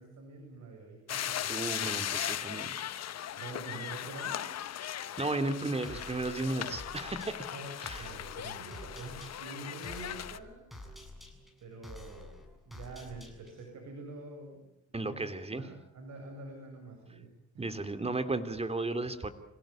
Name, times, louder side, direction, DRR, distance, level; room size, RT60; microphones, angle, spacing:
voice 1, 0.0-1.6 3.4-4.5 7.5-10.7 11.6-14.7 15.0-15.1 15.5-17.7, right 3 dB, 65° right, 2 dB, 7.4 m, -46 dB
sound 1, 1.1-10.4, left 10 dB, 60° left, 1.1 m, -38 dB
voice 2, 1.5-2.8 5.2-7.4 7.8-8.1 14.9-15.6 17.6-19.3, right 2 dB, 20° right, 9 dB, 2.9 m, -34 dB
sound 2, 5.8-13.7, left 1 dB, ahead, 7.5 m, -49 dB
27.0 x 17.5 x 8.9 m, 0.82 s
cardioid pair, 90°, 30 cm